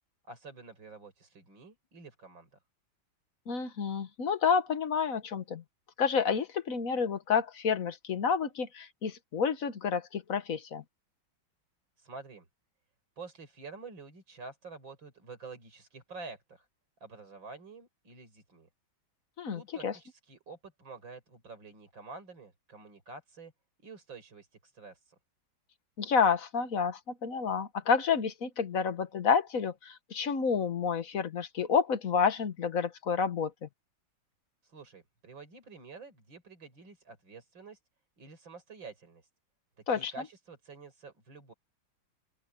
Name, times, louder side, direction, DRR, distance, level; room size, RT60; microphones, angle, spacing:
voice 1, 0.3-2.5 12.0-12.5 13.2-16.7 17.0-18.7 19.5-23.5 23.8-25.2 34.6-37.8 38.2-39.3 39.9-41.5, right 4 dB, 70° right, 5.9 m, -48 dB
voice 2, 3.5-5.6 6.0-10.8 19.4-19.9 26.0-33.7 39.9-40.1, left 6 dB, 45° left, 1.5 m, -29 dB
open air
omnidirectional pair, 2.2 m